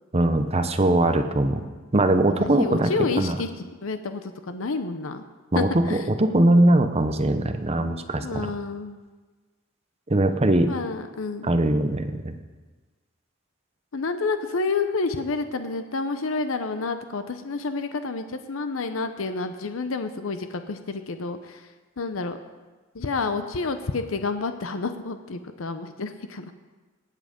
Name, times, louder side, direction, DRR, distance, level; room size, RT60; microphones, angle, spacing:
voice 1, 0.1-1.6 1.9-2.9 3.2-3.4 5.5-8.5 10.1-10.7 11.4-12.3, right 1 dB, 30° right, 8 dB, 0.8 m, -21 dB
voice 2, 2.4-5.2 5.5-6.1 8.2-9.0 10.7-11.5 13.9-21.7 22.0-22.4 22.9-26.5, left 3 dB, 90° left, 9 dB, 0.7 m, -29 dB
18.5 x 7.6 x 5.1 m, 1.3 s
head